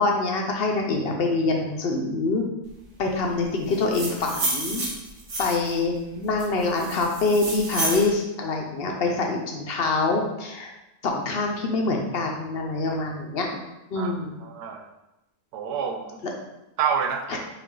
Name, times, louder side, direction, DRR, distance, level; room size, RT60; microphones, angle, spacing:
voice 1, 0.0-2.4 3.0-4.8 5.4-10.7 11.0-13.6 13.9-14.3 17.3-17.4, left 3 dB, 60° left, 1 dB, 0.6 m, -25 dB
sound 1, 3.7-5.8 6.4-8.1, right 2 dB, 55° right, 1.3 m, -30 dB
voice 2, 14.4-14.9 15.5-16.2 16.8-17.4, right 7 dB, 80° right, 2 dB, 1.2 m, -28 dB
5.7 x 2.5 x 3.7 m, 0.93 s
omnidirectional pair, 1.6 m